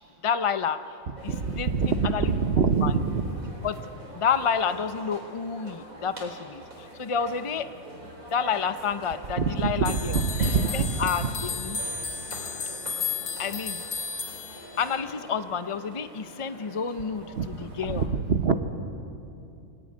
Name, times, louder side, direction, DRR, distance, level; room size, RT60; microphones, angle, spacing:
voice 1, 0.2-2.3 2.8-2.9 3.6-3.8 4.1-7.7 8.3-10.2 10.7-11.8 13.4-13.8 14.8-18.0, left 6 dB, 45° left, 10 dB, 0.4 m, -29 dB
sound 1, 1.2-18.1, right 1 dB, 75° right, 4.7 m, -44 dB
voice 2, 1.3-3.2 9.4-11.3 17.3-18.6, right 5 dB, 50° right, 9 dB, 1.2 m, -25 dB
sound 2, 9.8-15.1, left 5 dB, 80° left, 1.6 m, -34 dB
23.5 x 18.5 x 9.5 m, 2.7 s
omnidirectional pair, 1.5 m